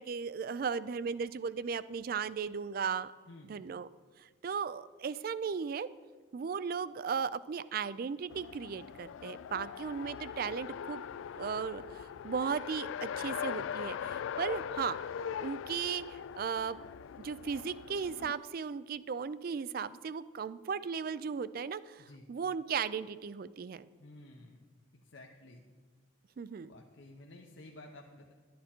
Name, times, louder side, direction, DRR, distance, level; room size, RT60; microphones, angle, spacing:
voice 1, 0.0-3.1 3.5-3.9 4.2-5.9 6.3-11.0 11.4-15.0 15.4-16.8 17.2-23.9 26.4-26.7, right 6 dB, 45° right, 17 dB, 0.3 m, -36 dB
Race car auto racing, 8.3-18.3, left 8 dB, 80° left, 0.3 m, -41 dB
voice 2, 24.0-24.6 24.9-25.6 26.6-28.3, left 2 dB, 65° left, 1 dB, 0.8 m, -53 dB
12.0 x 9.3 x 4.4 m, 1.5 s
head